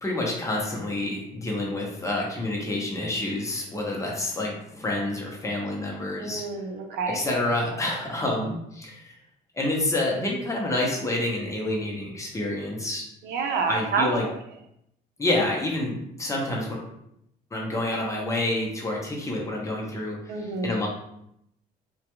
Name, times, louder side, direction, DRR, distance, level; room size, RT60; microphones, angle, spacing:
voice 1, 0.0-6.4 7.1-9.2 9.5-13.0 13.7-14.3 15.2-16.8 17.5-20.9, left 1 dB, 20° left, -2 dB, 0.7 m, -28 dB
voice 2, 6.1-7.2 13.2-14.1 20.3-20.8, right 4 dB, 75° right, 3 dB, 0.5 m, -28 dB
2.4 x 2.2 x 2.9 m, 0.77 s
cardioid pair, 110°, 17 cm